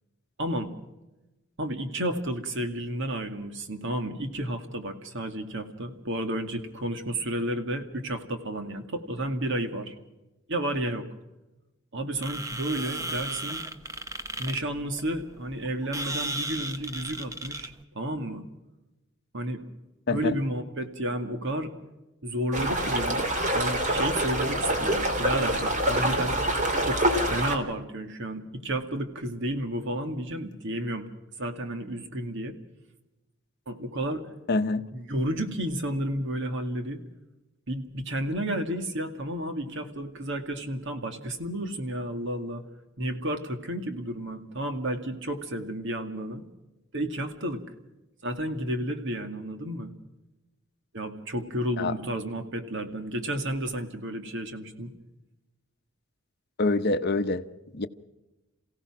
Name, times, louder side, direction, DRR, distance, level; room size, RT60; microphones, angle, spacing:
voice 1, 0.4-0.7 1.6-10.0 10.5-11.1 11.9-13.6 14.4-18.4 19.3-19.6 20.1-21.7 22.2-26.4 26.8-27.0 27.3-31.1 31.4-32.5 33.7-34.3 34.9-37.0 37.7-42.6 43.0-46.4 46.9-47.6 48.2-49.9 50.9-54.9, right 1 dB, 60° right, 2.2 m, -32 dB
sound 1, 12.2-17.8, right 2 dB, 15° right, 1.1 m, -35 dB
sound 2, 22.5-27.6, right 1 dB, 35° right, 2.8 m, -26 dB
voice 2, 34.5-34.8 51.8-51.9 56.6-57.4 57.7-57.9, left 3 dB, 50° left, 0.9 m, -25 dB
28.0 x 16.5 x 6.1 m
head